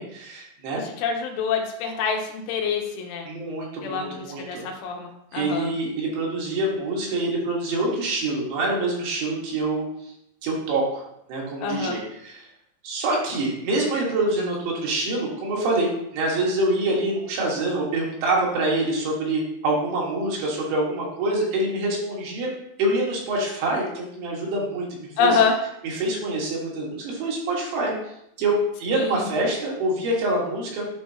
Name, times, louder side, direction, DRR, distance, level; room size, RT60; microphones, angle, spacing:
voice 1, 0.0-0.8 3.3-4.6 5.3-10.1 10.4-11.0 11.3-12.5 12.8-14.6 14.8-22.5 22.8-25.4 25.8-27.9 28.4-30.9, right 2 dB, 70° right, -3 dB, 3.7 m, -26 dB
voice 2, 0.7-3.3 3.8-5.7 11.6-12.0 25.2-25.6 28.9-29.3, left 5 dB, 85° left, 2 dB, 3.3 m, -26 dB
11.5 x 4.6 x 2.8 m, 0.78 s
omnidirectional pair, 5.5 m